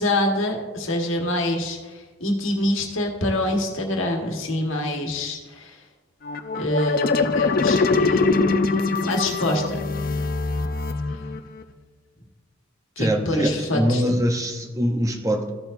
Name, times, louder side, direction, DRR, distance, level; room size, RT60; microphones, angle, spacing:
voice 1, 0.0-5.8 6.6-8.3 9.0-9.8 13.0-14.0, left 1 dB, 70° left, 1 dB, 1.5 m, -25 dB
sound 1, 6.2-11.6, left 3 dB, 45° left, 0.4 m, -23 dB
voice 2, 13.0-15.5, equal, 15° right, 5 dB, 0.7 m, -23 dB
14.5 x 6.9 x 2.6 m, 1.2 s
head